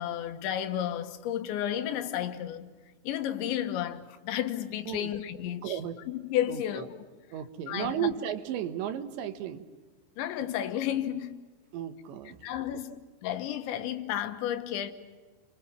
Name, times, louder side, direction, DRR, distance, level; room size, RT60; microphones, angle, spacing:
voice 1, 0.0-2.7 3.1-5.8 6.1-7.0 7.7-8.1 10.2-11.3 12.4-13.0 13.2-14.9, left 11 dB, 85° left, 3.7 m, -32 dB
voice 2, 5.6-6.0 6.5-6.9 7.3-9.6 11.7-12.4, right 10 dB, 85° right, 3.6 m, -34 dB
29.0 x 23.5 x 7.4 m
omnidirectional pair, 5.0 m